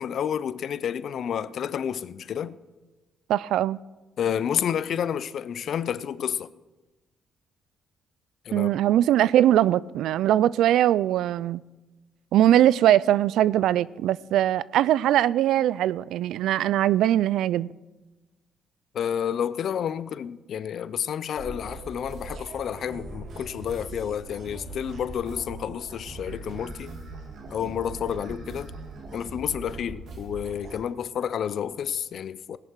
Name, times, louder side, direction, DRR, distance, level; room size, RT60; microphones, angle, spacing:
voice 1, 0.0-2.6 4.2-6.5 8.5-8.7 18.9-27.0 27.5-28.7 29.1-32.6, left 8 dB, 65° left, 0.5 m, -30 dB
voice 2, 3.3-3.8 8.5-11.6 12.3-17.7, right 12 dB, 80° right, 0.3 m, -21 dB
sound 1, 21.4-30.8, right 2 dB, 65° right, 2.5 m, -40 dB
17.0 x 10.5 x 4.6 m
cardioid pair, 90°, 0 cm